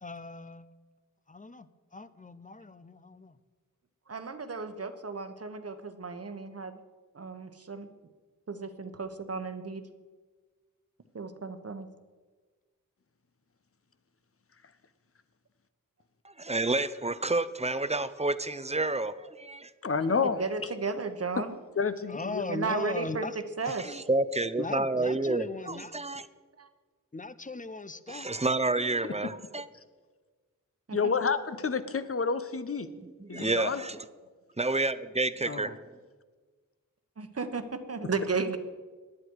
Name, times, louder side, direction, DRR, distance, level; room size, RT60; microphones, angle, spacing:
voice 1, 0.0-0.7 1.3-3.4 22.1-23.4 23.7-23.8 24.6-26.0 27.1-28.3, left 3 dB, 25° left, 14 dB, 0.7 m, -38 dB
voice 2, 4.1-6.8 7.1-7.9 8.5-9.8 11.1-11.9 20.1-21.6 22.5-23.3 23.6-24.0 26.6-26.7 30.9-31.0 37.2-38.6, right 4 dB, 45° right, 9 dB, 1.3 m, -34 dB
voice 3, 16.2-19.7 23.8-26.3 28.1-29.7 33.0-34.0 34.6-35.8, right 2 dB, 20° right, 14 dB, 0.7 m, -29 dB
voice 4, 19.8-20.4 21.8-22.4 29.2-29.3 30.9-32.9 33.3-33.8 35.5-35.7, left 5 dB, 45° left, 12 dB, 1.0 m, -29 dB
18.0 x 11.0 x 4.7 m, 1.4 s
wide cardioid pair, 65°, 33 cm